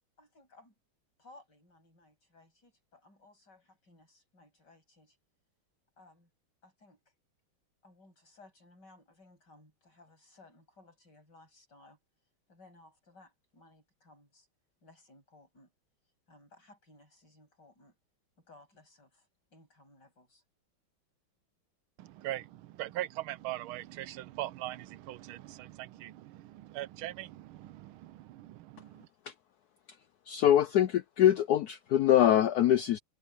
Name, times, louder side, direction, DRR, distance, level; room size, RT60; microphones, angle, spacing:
voice 1, 0.2-0.7 1.2-5.2 6.0-6.3 6.6-7.0 7.8-12.0 12.5-14.5 14.8-15.7 16.3-18.0 18.4-20.4, left 2 dB, 55° left, 8.6 m, -60 dB
voice 2, 22.0-29.1, right 15 dB, 85° right, 1.5 m, -41 dB
voice 3, 30.3-33.0, left 11 dB, 75° left, 0.8 m, -24 dB
omnidirectional pair, 2.2 m